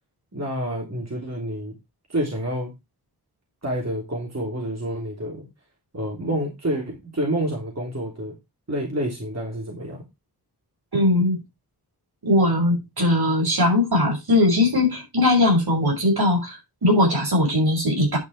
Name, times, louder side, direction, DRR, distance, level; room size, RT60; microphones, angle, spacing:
voice 1, 0.3-1.7 2.1-2.7 3.6-5.5 5.9-8.4 8.7-10.0, right 1 dB, 40° right, 3.3 m, -28 dB
voice 2, 10.9-11.4 12.2-18.2, left 1 dB, 70° right, 6.3 m, -20 dB
11.0 x 5.5 x 4.8 m
wide cardioid pair, 70°, 39 cm